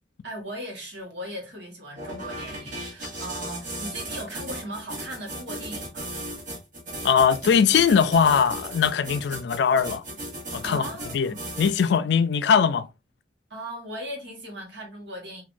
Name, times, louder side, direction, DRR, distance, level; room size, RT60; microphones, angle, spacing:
voice 1, 0.2-6.2 10.6-11.5 13.5-15.4, right 1 dB, 70° right, 1.3 m, -38 dB
sound 1, 1.9-12.0, right 1 dB, 50° right, 1.4 m, -36 dB
voice 2, 7.0-10.0 10.5-10.8 11.1-12.9, left 6 dB, 70° left, 0.3 m, -21 dB
3.6 x 2.7 x 2.5 m
head